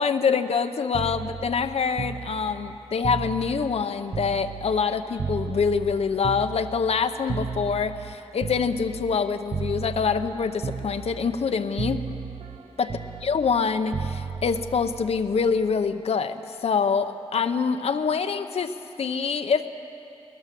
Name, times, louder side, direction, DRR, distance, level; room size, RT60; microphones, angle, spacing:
voice 1, 0.0-12.0 12.8-12.9 13.2-19.7, left 5 dB, 70° left, 8 dB, 0.7 m, -25 dB
sound 1, 0.9-4.9 5.2-9.2 9.5-10.3 10.6-11.5 11.8-15.8 17.0-17.2, right 6 dB, 55° right, 0.6 m, -34 dB
20.0 x 20.0 x 7.6 m, 2.9 s
wide cardioid pair, 160°, 11 cm